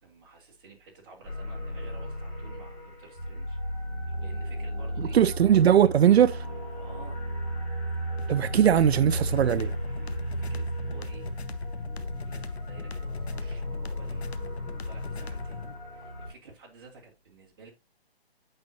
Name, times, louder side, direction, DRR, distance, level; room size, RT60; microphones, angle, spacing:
voice 1, 0.0-3.6 4.0-5.7 6.7-7.2 8.4-8.9 9.3-11.3 11.7-17.7, right 4 dB, 20° right, 2.1 m, -52 dB
sound 1, 1.2-16.3, equal, 5° left, 3.8 m, -34 dB
voice 2, 5.0-6.5 8.3-9.7, right 9 dB, 80° right, 0.5 m, -20 dB
sound 2, 8.2-15.7, left 5 dB, 85° left, 1.1 m, -41 dB
8.7 x 5.5 x 2.7 m
hypercardioid pair, 175°, 31 cm